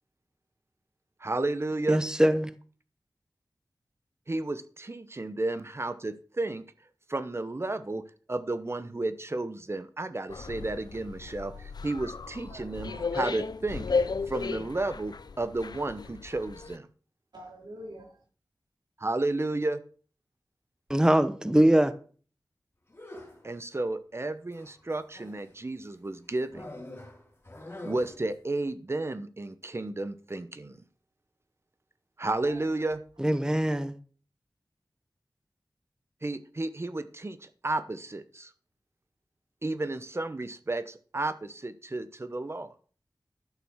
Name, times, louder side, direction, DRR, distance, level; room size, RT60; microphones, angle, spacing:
voice 1, 1.2-2.0 4.3-6.6 7.1-8.0 8.3-13.9 14.3-16.9 19.0-19.8 23.4-26.7 27.8-30.8 32.2-33.0 36.2-38.5 39.6-42.7, right 2 dB, 35° right, 0.9 m, -32 dB
voice 2, 1.9-2.5 20.9-21.9 33.2-33.9, right 1 dB, 10° right, 0.9 m, -22 dB
sound 1, 10.3-16.8, left 4 dB, 70° left, 0.6 m, -34 dB
voice 3, 12.5-13.1 17.3-18.2 32.4-32.9, right 1 dB, 85° right, 4.5 m, -47 dB
sound 2, 22.9-23.5 24.5-25.5 26.5-28.3, left 1 dB, 35° left, 3.4 m, -44 dB
11.5 x 6.9 x 6.4 m
wide cardioid pair, 80°, 7 cm